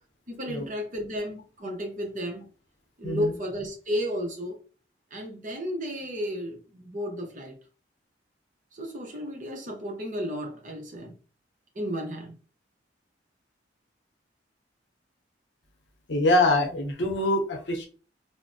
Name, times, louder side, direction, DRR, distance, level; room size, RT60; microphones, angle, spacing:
voice 1, 0.3-2.5 3.0-4.6 5.1-7.6 8.7-11.2 11.7-12.4, equal, 45° right, 0.7 m, -33 dB
voice 2, 3.0-3.3 16.1-17.9, left 1 dB, 70° left, 0.7 m, -24 dB
3.2 x 2.0 x 2.6 m
head